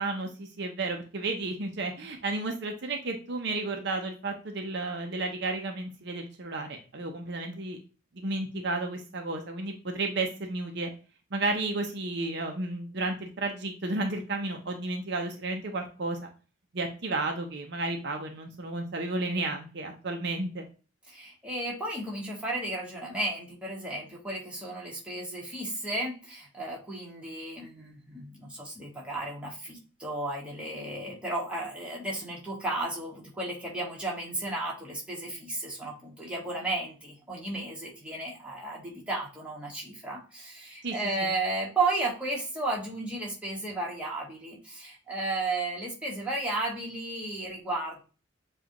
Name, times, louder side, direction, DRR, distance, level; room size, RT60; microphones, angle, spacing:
voice 1, 0.0-7.8 8.1-10.9 11.3-16.3 16.7-20.7 40.8-41.3, right 2 dB, 60° right, 3 dB, 0.7 m, -32 dB
voice 2, 21.1-48.0, right 2 dB, 5° right, -4 dB, 1.4 m, -34 dB
7.2 x 2.5 x 2.9 m, 0.35 s
head